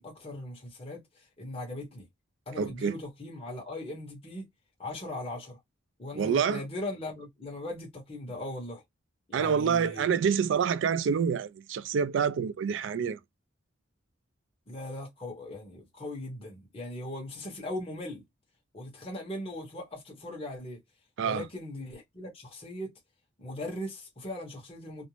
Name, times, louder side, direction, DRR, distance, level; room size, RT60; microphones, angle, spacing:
voice 1, 0.0-2.0 2.5-4.5 4.8-5.6 6.0-8.8 9.3-10.1 14.7-18.2 18.7-20.8 21.2-22.9 23.4-25.1, left 1 dB, 30° left, 1.0 m, -39 dB
voice 2, 2.6-2.9 6.1-6.6 9.3-13.2 21.2-21.4, right 6 dB, 70° right, 0.3 m, -27 dB
2.5 x 2.1 x 2.9 m
head